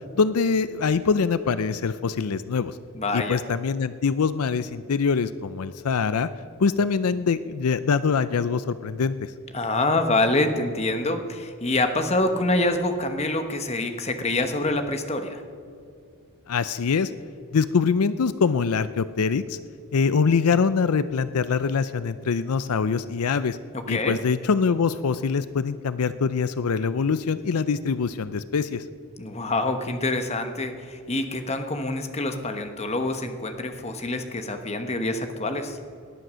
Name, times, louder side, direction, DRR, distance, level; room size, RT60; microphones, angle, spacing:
voice 1, 0.2-2.8 3.1-6.3 6.6-9.3 16.5-17.1 17.5-19.6 19.9-23.6 23.9-28.8, left 5 dB, 80° left, 14 dB, 0.5 m, -24 dB
voice 2, 2.9-3.4 9.5-15.4 23.9-24.2 29.2-35.8, left 2 dB, 30° left, 7 dB, 1.1 m, -26 dB
19.0 x 10.5 x 6.3 m, 2.5 s
head